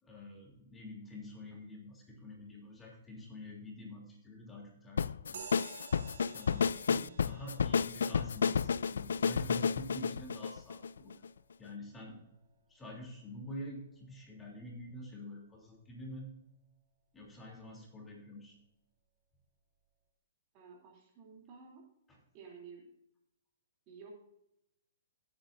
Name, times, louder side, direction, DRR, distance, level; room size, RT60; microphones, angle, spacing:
voice 1, 0.0-5.4 6.3-11.1 11.6-12.2 12.7-16.3 17.1-18.6 22.1-22.2, left 1 dB, 10° left, -1 dB, 3.0 m, -47 dB
sound 1, 5.0-11.3, left 6 dB, 80° left, 0.3 m, -31 dB
sound 2, 5.3-13.2, right 5 dB, 75° right, 3.0 m, -54 dB
voice 2, 20.5-21.9 22.3-22.9 23.9-24.1, right 5 dB, 35° right, 0 dB, 3.0 m, -53 dB
17.0 x 8.8 x 2.6 m, 0.81 s
hypercardioid pair, 140°, 0 cm